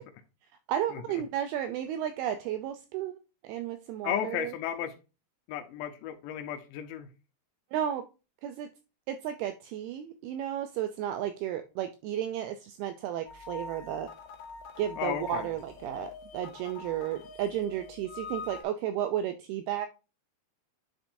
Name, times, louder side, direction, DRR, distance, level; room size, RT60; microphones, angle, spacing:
voice 1, 0.7-3.2 3.4-4.5 7.7-8.1 8.4-8.7 9.1-14.1 14.8-19.9, right 10 dB, 85° right, 2.2 m, -33 dB
voice 2, 4.0-4.9 5.5-7.1 15.0-15.5, left 10 dB, 90° left, 3.0 m, -34 dB
sound 1, 13.3-18.6, left 4 dB, 65° left, 3.0 m, -44 dB
10.0 x 4.4 x 2.6 m
omnidirectional pair, 4.9 m